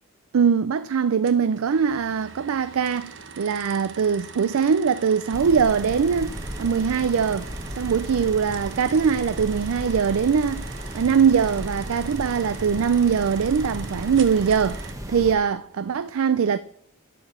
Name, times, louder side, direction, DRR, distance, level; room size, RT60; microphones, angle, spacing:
voice 1, 0.3-16.6, right 6 dB, 80° right, 0.4 m, -22 dB
sound 1, 1.3-14.9, right 5 dB, 60° right, 1.0 m, -42 dB
sound 2, 5.3-15.3, equal, 15° right, 1.0 m, -35 dB
11.5 x 5.0 x 6.7 m
head